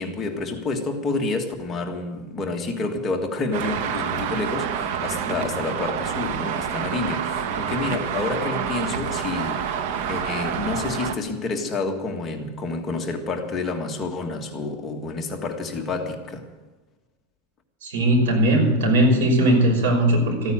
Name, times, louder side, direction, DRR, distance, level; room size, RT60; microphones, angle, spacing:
voice 1, 0.0-9.8 10.1-16.4, left 3 dB, 20° left, 1.7 m, -29 dB
Traffic noise roadway noise, 3.5-11.1, right 7 dB, 60° right, 1.2 m, -28 dB
voice 2, 17.8-20.5, right 1 dB, 80° right, 5.6 m, -19 dB
14.5 x 9.5 x 8.9 m
supercardioid pair, 155°, 0 cm